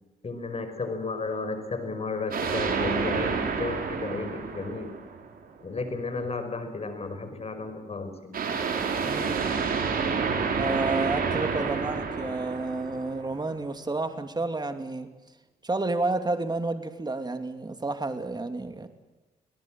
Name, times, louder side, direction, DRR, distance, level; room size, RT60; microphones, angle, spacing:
voice 1, 0.2-4.9 5.6-8.4, left 3 dB, 40° left, 8 dB, 5.5 m, -33 dB
sound 1, 2.3-5.4 8.3-13.5, right 5 dB, 65° right, 4.5 m, -29 dB
voice 2, 9.0-9.5 10.5-15.1 15.6-18.9, right 2 dB, 25° right, 8 dB, 2.8 m, -30 dB
24.0 x 18.5 x 7.7 m, 1.2 s
supercardioid pair, 60°, 16 cm